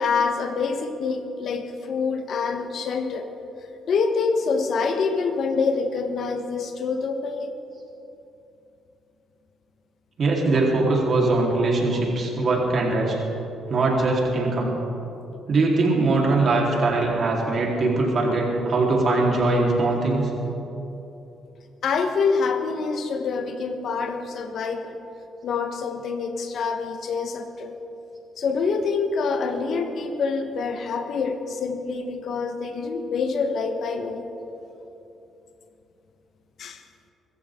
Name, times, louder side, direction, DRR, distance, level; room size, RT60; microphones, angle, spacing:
voice 1, 0.0-3.3 3.9-7.5 11.9-12.0 21.8-25.0 25.4-27.7 28.4-34.2 36.6-36.8, left 4 dB, 65° left, 7 dB, 1.3 m, -26 dB
voice 2, 10.2-13.1 13.7-14.7 15.5-20.3, right 2 dB, 50° right, -2 dB, 4.0 m, -21 dB
24.0 x 14.0 x 3.8 m, 2.9 s
cardioid pair, 90°, 0 cm